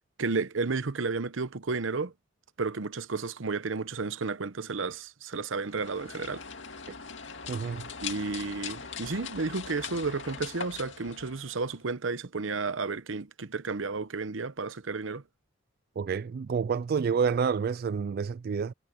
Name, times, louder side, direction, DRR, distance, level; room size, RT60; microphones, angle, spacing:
voice 1, 0.2-2.1 2.6-6.4 8.0-15.2, right 4 dB, 85° right, 0.9 m, -32 dB
sound 1, 5.7-11.8, left 6 dB, 70° left, 2.3 m, -41 dB
voice 2, 7.5-7.8 16.0-18.7, right 6 dB, 50° right, 0.3 m, -28 dB
head